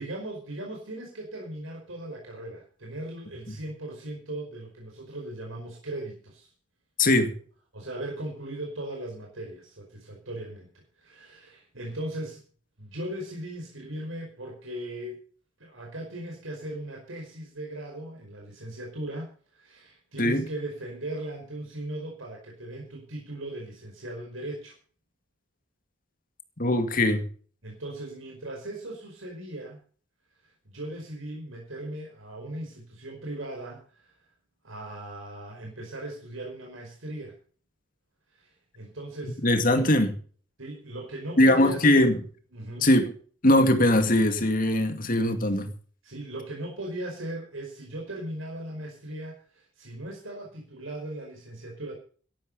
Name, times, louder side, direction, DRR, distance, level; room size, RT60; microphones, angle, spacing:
voice 1, 0.0-6.5 7.7-12.4 12.8-15.2 15.6-24.7 27.6-29.8 30.4-34.2 34.6-37.4 38.3-39.8 40.6-42.1 42.5-42.9 46.0-52.0, right 1 dB, 80° right, 5.0 m, -38 dB
voice 2, 7.0-7.3 20.2-20.5 26.6-27.2 39.4-40.1 41.4-42.2 42.8-43.1 43.4-45.7, left 1 dB, 45° left, 2.2 m, -21 dB
14.0 x 12.0 x 5.5 m
head